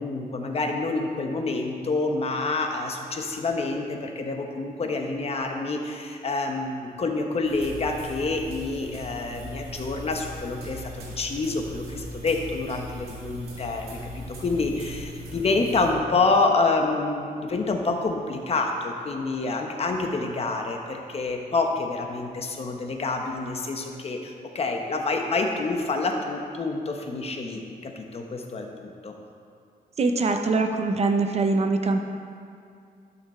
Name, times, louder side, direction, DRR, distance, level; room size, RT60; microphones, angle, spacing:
voice 1, 0.0-29.1, left 3 dB, 40° left, 3 dB, 1.0 m, -27 dB
sound 1, 7.4-15.9, equal, 85° right, 2.0 m, -39 dB
voice 2, 30.0-32.0, right 3 dB, 40° right, 5 dB, 0.7 m, -23 dB
12.0 x 5.9 x 4.3 m, 2.4 s
cardioid pair, 120°, 16 cm